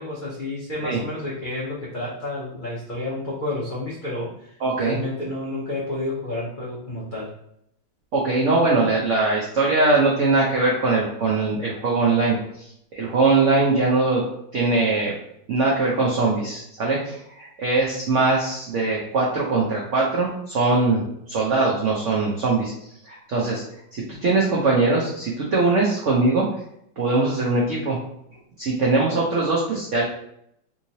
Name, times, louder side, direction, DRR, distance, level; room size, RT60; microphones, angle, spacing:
voice 1, 0.0-4.5 4.8-7.3, left 2 dB, 75° left, -7 dB, 0.4 m, -30 dB
voice 2, 4.6-5.0 8.1-14.2 14.5-15.1 15.5-21.0 21.3-22.7 23.0-23.6 23.9-26.4 27.0-28.0 28.6-30.0, right 3 dB, 80° right, -4 dB, 0.6 m, -21 dB
3.7 x 3.0 x 2.7 m, 0.74 s
omnidirectional pair, 2.2 m